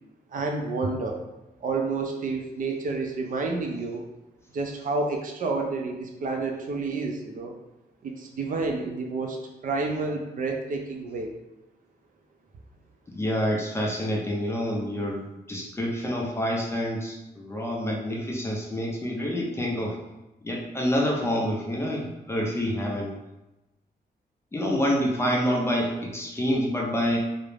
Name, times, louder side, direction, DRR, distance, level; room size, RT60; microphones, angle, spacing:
voice 1, 0.3-1.2 1.6-4.0 4.5-7.5 8.0-11.3, right 3 dB, 55° right, 2 dB, 0.4 m, -29 dB
voice 2, 13.1-20.0 20.4-23.1 24.5-27.2, equal, 15° left, -2 dB, 0.4 m, -27 dB
2.4 x 2.0 x 3.1 m, 0.98 s
wide cardioid pair, 150°, 17 cm